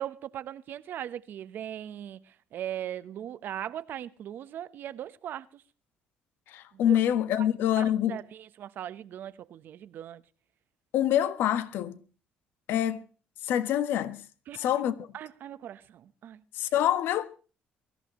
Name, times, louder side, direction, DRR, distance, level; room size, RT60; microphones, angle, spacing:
voice 1, 0.0-5.6 6.7-7.0 7.4-7.5 7.7-10.2 14.5-14.7 15.1-16.4, right 11 dB, 60° right, 1.0 m, -39 dB
voice 2, 6.5-8.2 10.9-12.0 12.7-13.0 13.4-14.2 14.6-15.1 16.5-17.2, left 11 dB, 75° left, 1.3 m, -26 dB
23.0 x 14.5 x 3.1 m
cardioid pair, 105°, 4 cm